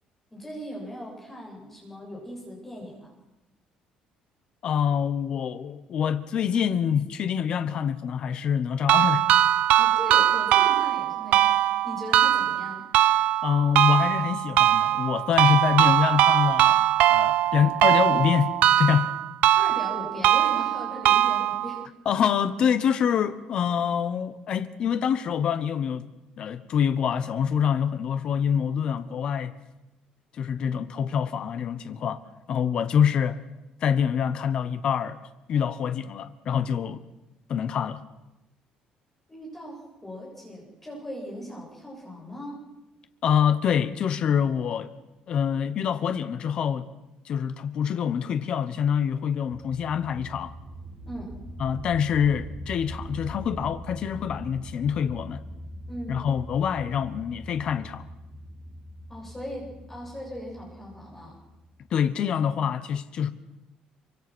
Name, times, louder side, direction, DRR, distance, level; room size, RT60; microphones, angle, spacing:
voice 1, 0.3-3.1 9.8-12.8 19.6-21.8 39.3-42.6 51.1-51.3 55.9-56.3 59.1-61.4, equal, 10° left, 7.6 m, -39 dB
voice 2, 4.6-9.2 13.4-18.5 18.8-19.1 22.0-26.1 26.4-29.5 30.4-32.2 32.5-33.4 33.8-37.0 37.5-38.0 43.2-44.9 45.3-46.9 47.2-50.5 51.6-55.4 56.1-58.0 61.9-63.3, left 8 dB, 40° left, 1.0 m, -25 dB
sound 1, 8.9-21.9, right 12 dB, 65° right, 0.8 m, -21 dB
sound 2, 49.5-61.9, right 1 dB, 15° right, 6.2 m, -42 dB
25.5 x 24.5 x 6.2 m
cardioid pair, 180°, 2 cm